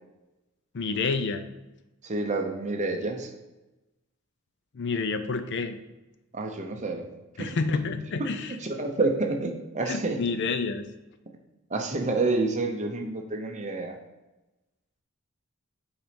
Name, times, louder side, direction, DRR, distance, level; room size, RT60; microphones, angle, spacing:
voice 1, 0.7-1.5 4.7-5.8 7.4-8.5 9.9-10.9, left 4 dB, 55° left, 10 dB, 0.5 m, -29 dB
voice 2, 2.0-3.3 6.3-7.1 7.4-7.6 8.2-8.3 8.6-10.2 11.7-14.0, right 3 dB, 35° right, 3 dB, 0.8 m, -28 dB
5.9 x 4.1 x 5.1 m, 1.0 s
head